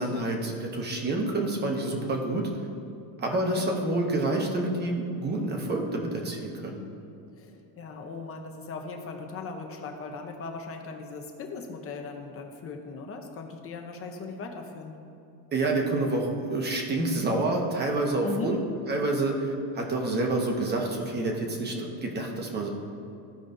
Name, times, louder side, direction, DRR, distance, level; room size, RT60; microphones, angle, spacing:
voice 1, 0.0-2.5 3.2-6.8 15.5-18.6 18.9-22.7, right 2 dB, 20° right, 0 dB, 1.0 m, -28 dB
voice 2, 3.3-3.6 6.7-6.9 7.4-14.9 18.2-18.5, left 4 dB, 30° left, 3 dB, 0.8 m, -38 dB
15.0 x 5.0 x 2.7 m, 2.7 s
cardioid pair, 155°, 44 cm